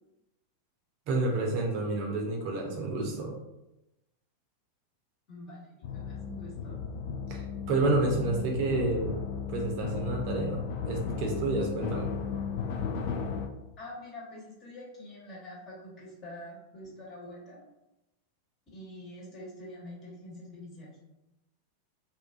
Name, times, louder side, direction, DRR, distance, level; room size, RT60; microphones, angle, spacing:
voice 1, 1.1-3.3 7.3-9.2 9.5-10.6 10.9-12.1, right 3 dB, 50° right, 0 dB, 0.6 m, -29 dB
voice 2, 5.3-6.8 13.8-17.6 18.7-20.9, left 1 dB, 35° left, -5 dB, 1.2 m, -45 dB
sound 1, 5.8-13.5, left 6 dB, 50° left, 0.3 m, -35 dB
2.5 x 2.3 x 2.5 m, 0.93 s
figure-of-eight pair, 90°, 0 cm